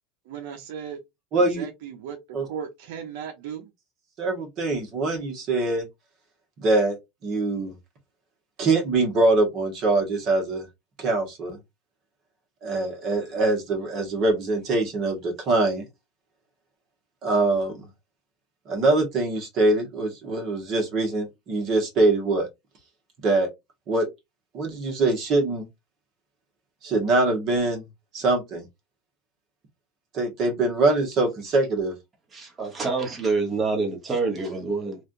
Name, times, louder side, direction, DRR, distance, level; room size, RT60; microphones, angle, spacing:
voice 1, 0.2-1.0 1.3-3.7, right 7 dB, 75° right, 0.7 m, -37 dB
voice 2, 1.3-1.6 2.3-2.4 4.2-5.8 6.6-7.0 7.2-7.7 8.6-10.6 11.0-11.6 12.6-15.8 17.2-17.9 18.7-22.5 23.2-23.5 23.9-24.1 24.5-25.7 26.8-27.8 28.1-28.7 30.1-31.9, right 2 dB, 45° right, 1.4 m, -23 dB
voice 3, 32.3-35.0, right 4 dB, 20° right, 1.2 m, -26 dB
3.2 x 2.5 x 2.6 m
supercardioid pair, 125°, 0 cm